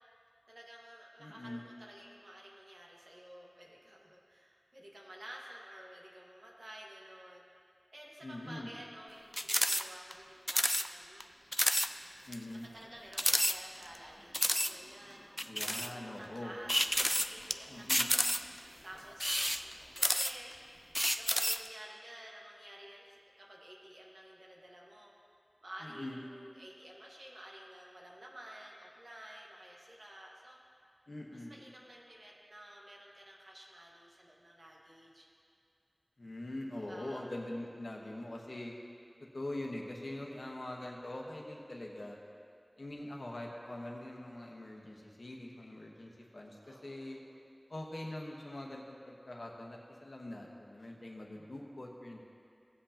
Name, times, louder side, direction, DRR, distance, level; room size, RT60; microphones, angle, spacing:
voice 1, 0.5-7.4 7.9-11.2 12.7-15.6 15.9-25.1 25.6-30.6 31.5-35.3 36.7-37.3 38.0-38.2 46.6-47.4, right 1 dB, 90° right, -3 dB, 1.5 m, -52 dB
voice 2, 1.2-1.6 8.2-8.7 12.2-12.7 15.5-16.5 17.7-18.1 25.8-26.2 31.1-31.5 36.2-38.7 39.3-42.2 42.8-47.2 47.7-52.2, left 1 dB, 90° left, -1 dB, 1.2 m, -43 dB
sound 1, 9.3-9.8 10.1-10.2 10.5-10.9 11.2-11.3 11.5-11.9 12.3-12.4 13.1-14.0 14.3-14.7 15.4-15.9 16.7-17.5 17.9-18.6 19.1-20.5 20.9-21.7, equal, 5° left, 0.4 m, -30 dB
17.0 x 7.8 x 2.9 m, 2.3 s
wide cardioid pair, 40°, 0 cm